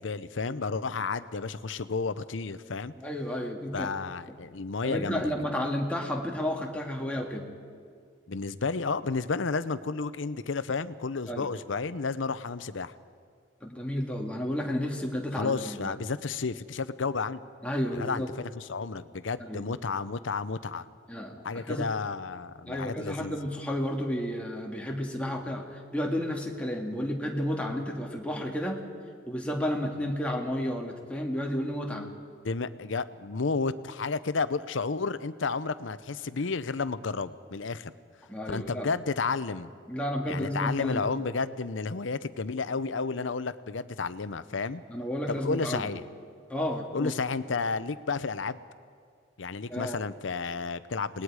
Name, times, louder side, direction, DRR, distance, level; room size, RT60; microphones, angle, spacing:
voice 1, 0.0-2.9 3.7-5.3 8.3-12.9 15.4-17.4 17.9-20.9 21.4-23.3 32.4-37.9 38.5-39.7 40.3-44.8 45.3-46.0 46.9-48.6 49.4-51.2, left 4 dB, 80° left, 14 dB, 0.7 m, -32 dB
voice 2, 3.0-3.9 4.8-7.5 11.3-11.5 13.6-15.9 17.6-18.3 19.4-19.6 21.1-21.9 22.7-28.9 29.3-32.1 38.3-38.9 39.9-41.0 44.9-45.9 46.5-47.1 49.7-50.0, equal, 5° left, 0 dB, 2.0 m, -32 dB
28.5 x 19.5 x 4.9 m, 2.1 s
head